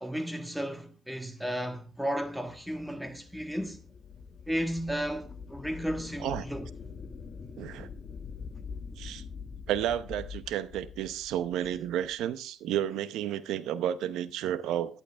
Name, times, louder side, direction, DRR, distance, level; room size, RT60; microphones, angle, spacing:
voice 1, 0.0-3.8 4.5-6.7, equal, 5° right, 1.6 m, -34 dB
sound 1, 2.2-12.2, left 5 dB, 45° left, 1.4 m, -44 dB
voice 2, 7.6-7.9 9.0-9.2 9.7-15.0, right 10 dB, 90° right, 0.8 m, -32 dB
11.0 x 10.0 x 3.5 m
cardioid pair, 90°, 0 cm